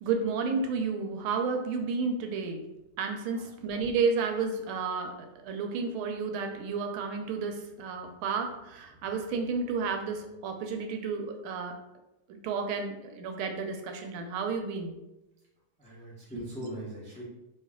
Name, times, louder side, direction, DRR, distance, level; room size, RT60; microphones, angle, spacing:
voice 1, 0.0-2.6 3.0-11.8 12.4-15.0 16.3-16.4, right 5 dB, 85° right, 5 dB, 1.4 m, -31 dB
voice 2, 15.8-17.2, right 1 dB, 10° left, -7 dB, 0.3 m, -40 dB
3.1 x 3.0 x 3.6 m, 0.94 s
omnidirectional pair, 2.3 m